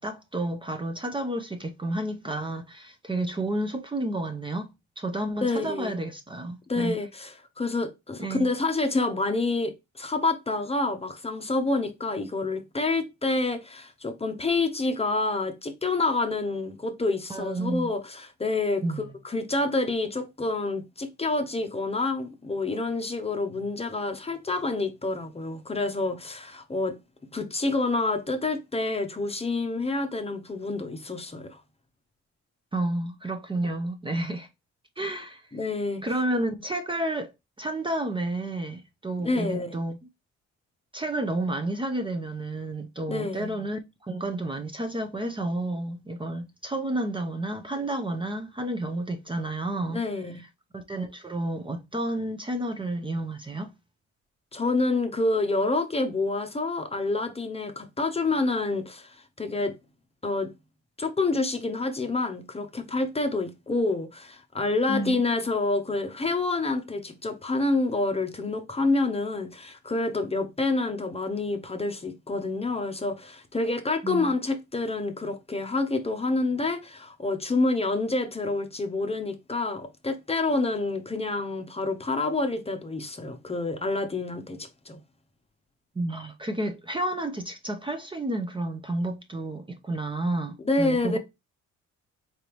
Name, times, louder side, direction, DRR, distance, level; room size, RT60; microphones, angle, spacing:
voice 1, 0.0-4.7 5.0-7.0 8.2-8.5 17.3-17.9 18.8-19.1 32.7-34.5 35.0-35.5 36.0-37.3 37.6-40.0 40.9-50.0 50.7-53.7 64.9-65.2 74.0-74.3 86.0-91.2, right 1 dB, 15° right, 0.6 m, -31 dB
voice 2, 5.4-6.0 6.7-27.0 27.3-31.6 35.5-36.0 39.2-39.8 43.1-43.6 49.9-50.3 54.5-59.8 60.2-60.5 61.0-85.0 90.6-91.2, left 3 dB, 20° left, 0.8 m, -28 dB
4.0 x 3.4 x 2.9 m
cardioid pair, 90°, 30 cm